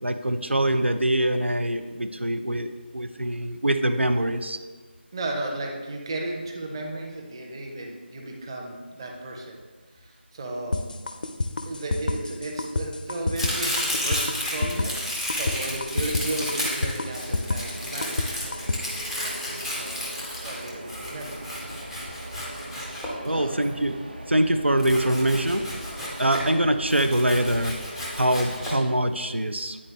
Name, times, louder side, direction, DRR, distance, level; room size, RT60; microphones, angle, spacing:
voice 1, 0.0-4.6 23.2-24.0 24.3-25.6 26.2-27.7 28.1-29.8, right 1 dB, 90° right, 8 dB, 0.5 m, -24 dB
voice 2, 5.1-9.6 10.0-10.8 11.7-18.6 19.2-20.1 20.4-21.4 23.3-23.6, right 2 dB, 25° right, 0 dB, 0.8 m, -34 dB
sound 1, 10.7-18.8, left 2 dB, 50° left, 0.5 m, -28 dB
Domestic sounds home sounds, 13.4-23.6 24.8-26.5 26.9-28.7, left 1 dB, ahead, 0.4 m, -32 dB
sound 2, 17.0-28.7, right 1 dB, 60° right, 1.1 m, -40 dB
9.8 x 4.2 x 3.3 m, 1.4 s
figure-of-eight pair, 160°, 6 cm